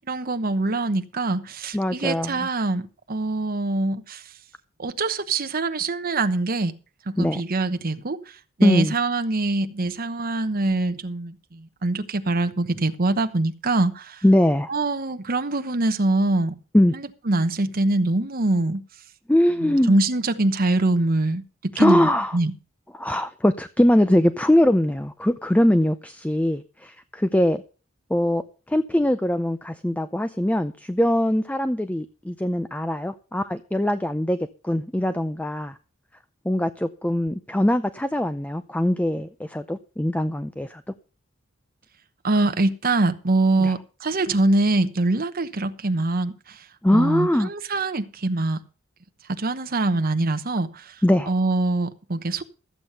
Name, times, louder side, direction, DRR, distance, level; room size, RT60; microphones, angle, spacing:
voice 1, 0.1-4.3 4.8-6.7 7.1-14.2 14.7-16.5 16.9-18.8 19.6-22.5 42.2-46.6 46.9-48.6 49.3-52.4, right 2 dB, 45° right, 1.0 m, -24 dB
voice 2, 1.7-2.4 7.2-7.4 8.6-8.9 14.2-14.7 16.7-16.9 19.3-20.0 21.7-22.3 22.9-27.6 28.1-28.4 28.7-34.4 34.6-35.8 36.4-40.8 43.6-43.7 46.8-47.5 51.0-51.3, left 1 dB, 5° left, 0.5 m, -21 dB
13.5 x 8.3 x 5.7 m
head